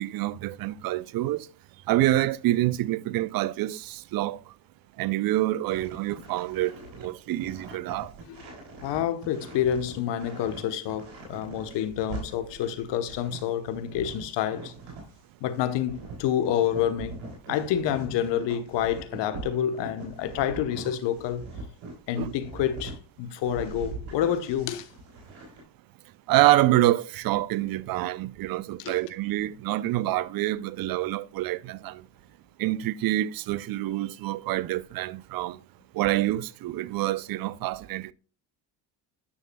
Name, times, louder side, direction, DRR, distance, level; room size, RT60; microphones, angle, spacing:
voice 1, 0.0-1.5 1.9-4.4 5.0-8.1 22.2-22.3 26.3-32.0 32.6-35.6 35.9-38.1, right 15 dB, 50° right, 0.5 m, -26 dB
sound 1, 5.7-15.2 15.5-23.0 23.4-25.6, right 3 dB, 90° right, 3.7 m, -42 dB
voice 2, 8.8-14.7 15.4-17.2 17.5-21.5 22.1-24.9 28.8-28.9, left 10 dB, 65° left, 1.0 m, -28 dB
9.7 x 6.5 x 2.2 m
supercardioid pair, 85°, 46 cm